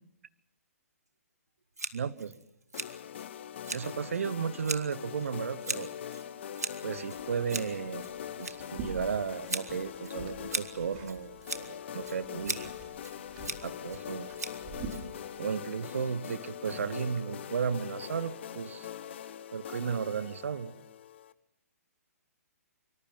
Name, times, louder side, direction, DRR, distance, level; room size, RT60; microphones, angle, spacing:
Scissors, 1.8-15.5, right 3 dB, 80° right, 2.4 m, -41 dB
voice 1, 1.9-2.3 3.7-5.9 6.8-8.1 8.4-12.7 13.6-14.3 15.4-18.9 19.5-20.7, right 6 dB, 60° right, 16 dB, 1.2 m, -34 dB
sound 1, 2.7-21.3, left 9 dB, 45° left, 1.1 m, -42 dB
sound 2, 6.9-11.7 12.0-15.6, right 4 dB, 30° right, 4.1 m, -47 dB
25.0 x 25.0 x 5.7 m, 0.78 s
figure-of-eight pair, 125°, 8 cm